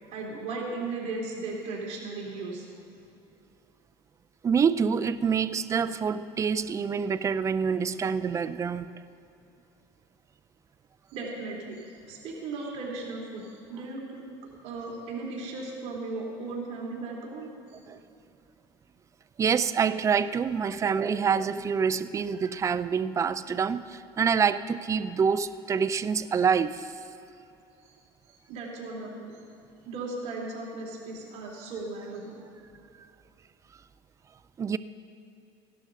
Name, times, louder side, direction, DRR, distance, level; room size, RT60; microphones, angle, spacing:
voice 1, 0.0-2.7 11.1-14.2 14.6-17.5 27.8-27.9 28.5-29.4 29.8-32.3, right 3 dB, 60° right, -2 dB, 2.7 m, -36 dB
voice 2, 4.4-8.9 17.9-18.0 19.4-27.0 33.0-33.1 34.6-34.8, right 6 dB, 25° right, 14 dB, 0.4 m, -26 dB
15.5 x 11.5 x 3.9 m, 2.8 s
supercardioid pair, 115°, 13 cm